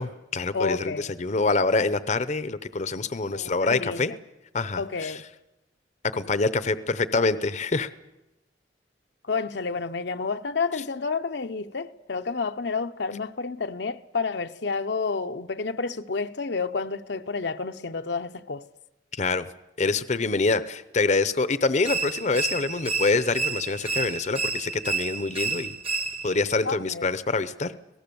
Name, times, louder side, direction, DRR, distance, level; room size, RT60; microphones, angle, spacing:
voice 1, 0.0-4.1 4.5-5.2 6.1-7.9 19.2-19.5 19.8-25.7 26.2-27.7, left 3 dB, 40° left, 0.8 m, -25 dB
voice 2, 0.5-1.1 3.3-4.0 4.7-5.2 9.3-18.6 26.6-27.2, left 4 dB, 70° left, 0.8 m, -30 dB
sound 1, 21.8-26.5, right 4 dB, 35° right, 1.2 m, -30 dB
26.0 x 18.5 x 7.0 m
head